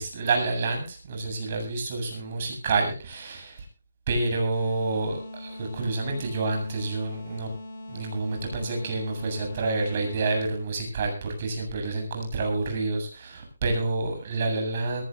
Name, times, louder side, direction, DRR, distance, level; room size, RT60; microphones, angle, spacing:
voice 1, 0.0-3.7 4.1-7.5 7.9-15.0, right 3 dB, 35° right, 3 dB, 7.8 m, -28 dB
sound 1, 4.5-10.5, left 1 dB, 50° left, 8.0 m, -41 dB
22.0 x 17.0 x 2.5 m, 0.33 s
hypercardioid pair, 165°, 0 cm